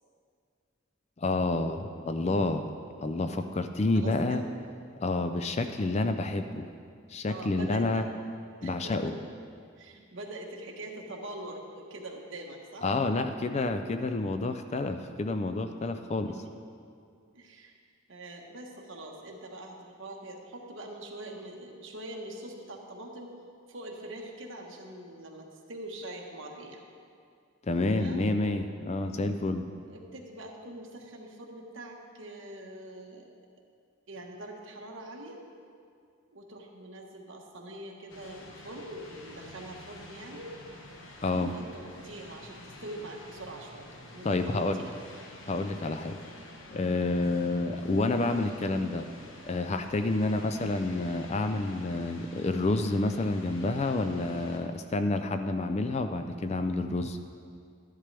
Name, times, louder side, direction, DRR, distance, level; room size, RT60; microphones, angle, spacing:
voice 1, 1.2-2.7 3.0-4.4 5.0-6.7 7.1-8.0 8.6-9.1 12.8-16.4 27.7-29.7 41.2-41.5 44.2-44.8 45.5-46.2 46.7-49.1 49.4-57.2, left 2 dB, 30° left, 8 dB, 0.4 m, -29 dB
voice 2, 3.9-4.5 7.3-8.1 8.6-9.2 9.8-13.0 16.3-16.4 17.3-17.7 18.1-23.3 23.7-26.8 27.9-28.3 29.9-33.3 34.1-35.4 36.3-40.5 41.3-44.9 50.0-50.3, right 1 dB, 65° right, 0 dB, 1.3 m, -43 dB
sound 1, 38.1-54.6, left 1 dB, 65° left, 1.1 m, -49 dB
12.5 x 11.0 x 3.4 m, 2.3 s
head